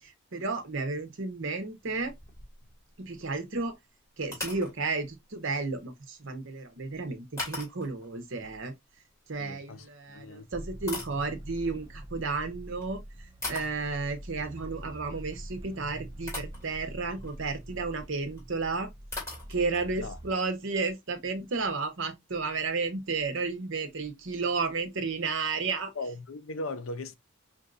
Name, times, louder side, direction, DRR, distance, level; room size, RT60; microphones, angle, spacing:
voice 1, 0.0-2.1 3.0-3.8 4.2-8.7 9.3-18.9 19.5-25.9, right 4 dB, 60° right, 0.9 m, -32 dB
sound 1, 1.8-2.9 3.2-3.4 4.2-4.7 7.4-8.1 9.7-9.9 10.5-11.7 12.7-12.9 13.4-13.8 15.7-15.8 16.3-16.7 17.1-17.4 18.4-18.5 18.7-18.8 19.1-19.9, left 2 dB, 15° left, 2.2 m, -39 dB
voice 2, 9.4-10.5 20.0-20.2 25.9-27.1, left 2 dB, 65° left, 0.6 m, -38 dB
sound 2, 10.5-20.3, right 1 dB, 15° right, 0.4 m, -44 dB
5.2 x 2.7 x 2.4 m
head